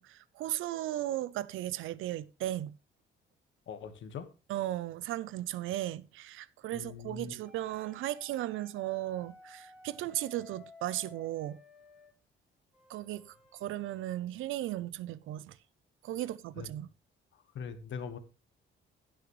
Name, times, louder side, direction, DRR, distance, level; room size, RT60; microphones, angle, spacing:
voice 1, 0.0-2.8 4.5-11.6 12.9-13.3 13.6-15.6 16.0-16.9, right 14 dB, 85° right, 0.6 m, -36 dB
voice 2, 3.7-4.3 6.7-7.3 16.6-16.7 17.3-18.2, left 6 dB, 70° left, 1.5 m, -42 dB
sound 1, 7.4-12.1 12.7-14.1, left 2 dB, 5° right, 4.9 m, -56 dB
17.0 x 6.4 x 3.2 m
cardioid pair, 90°, 20 cm